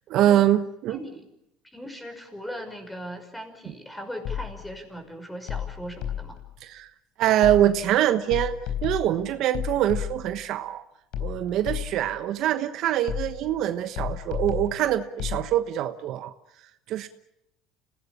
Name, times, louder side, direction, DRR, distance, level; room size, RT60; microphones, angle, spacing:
voice 1, 0.1-1.0 6.6-6.9 7.2-8.5 8.8-10.8 11.2-16.3 16.9-17.1, right 12 dB, 60° right, 10 dB, 1.2 m, -24 dB
voice 2, 0.9-1.2 1.6-6.4, equal, 5° left, 6 dB, 5.9 m, -39 dB
sound 1, 4.2-4.8 5.5-6.5 7.4-7.9 8.3-10.4 11.1-12.2 13.1-13.6 14.0-15.5, left 9 dB, 70° left, 4.2 m, -32 dB
26.5 x 18.0 x 8.6 m, 0.83 s
supercardioid pair, 105°, 0 cm